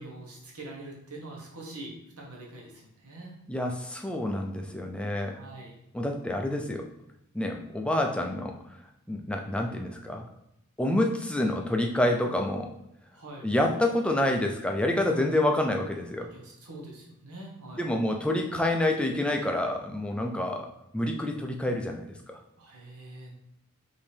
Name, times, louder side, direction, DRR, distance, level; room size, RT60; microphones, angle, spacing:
voice 1, 0.0-3.4 5.2-5.8 13.1-13.5 16.3-18.1 22.6-23.4, right 2 dB, 85° right, -2 dB, 1.1 m, -44 dB
voice 2, 3.5-5.4 5.9-6.9 7.3-8.5 9.1-10.2 10.8-12.7 13.4-16.3 17.8-20.7 20.9-22.4, left 1 dB, 5° left, 2 dB, 0.3 m, -28 dB
5.2 x 2.8 x 3.3 m, 0.81 s
head